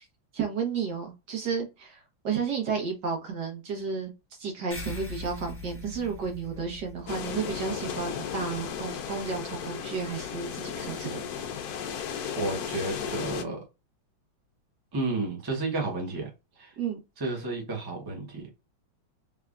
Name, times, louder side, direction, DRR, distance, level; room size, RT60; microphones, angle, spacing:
voice 1, 0.3-11.3 16.8-17.0, right 6 dB, 60° right, 1.6 m, -32 dB
sound 1, 4.7-9.5, left 3 dB, 20° left, 0.4 m, -43 dB
sound 2, 7.1-13.4, left 7 dB, 70° left, 0.9 m, -35 dB
voice 2, 12.4-13.6 14.9-16.3 16.6-16.7 17.2-18.5, right 2 dB, 15° right, 0.7 m, -31 dB
3.5 x 3.4 x 2.4 m
omnidirectional pair, 2.2 m